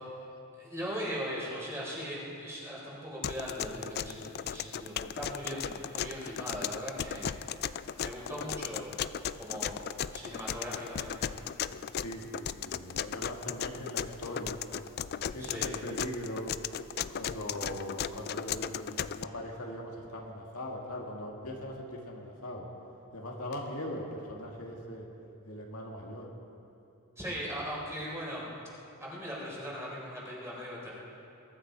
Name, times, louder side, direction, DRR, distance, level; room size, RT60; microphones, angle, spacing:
voice 1, 0.5-7.6 8.0-9.8 10.1-11.3 15.4-15.7 27.2-28.5 29.0-30.9, equal, 10° right, -6 dB, 4.3 m, -39 dB
sound 1, 3.2-19.2, left 9 dB, 45° left, 0.4 m, -36 dB
voice 2, 12.0-14.6 15.1-16.5 17.1-22.7 23.1-25.1 25.4-26.3, left 1 dB, 70° left, -1 dB, 2.1 m, -40 dB
22.0 x 13.5 x 4.7 m, 2.8 s
head